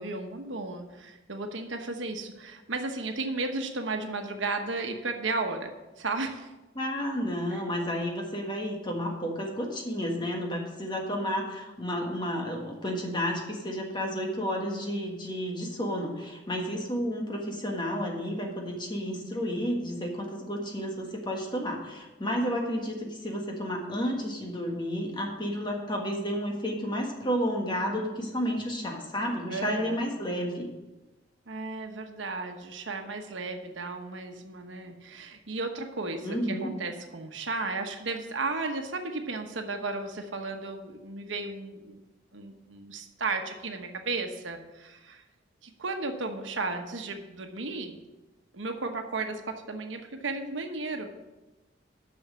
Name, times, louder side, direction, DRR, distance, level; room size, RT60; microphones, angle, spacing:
voice 1, 0.0-5.7 6.0-6.5 7.5-7.6 29.5-30.0 31.5-42.0 42.3-45.2 45.6-48.0 48.5-51.1, right 3 dB, 85° right, 5 dB, 1.1 m, -34 dB
voice 2, 6.7-30.7 36.2-36.7, equal, 25° left, 1 dB, 1.5 m, -31 dB
6.7 x 6.3 x 7.5 m, 1.1 s
head